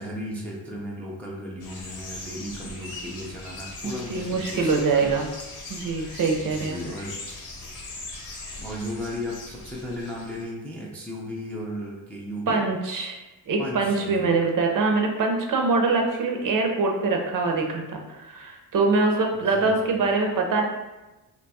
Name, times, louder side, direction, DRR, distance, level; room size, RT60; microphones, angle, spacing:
voice 1, 0.0-5.2 6.4-7.2 8.6-12.6 13.6-14.3 19.3-20.1, equal, 5° left, -3 dB, 0.3 m, -35 dB
sound 1, 1.6-10.4, left 2 dB, 50° left, 0.8 m, -40 dB
voice 2, 3.8-5.3 5.7-6.8 12.5-13.2 13.5-20.6, right 3 dB, 55° right, 2 dB, 0.5 m, -24 dB
2.9 x 2.3 x 4.0 m, 1.1 s
wide cardioid pair, 155°, 39 cm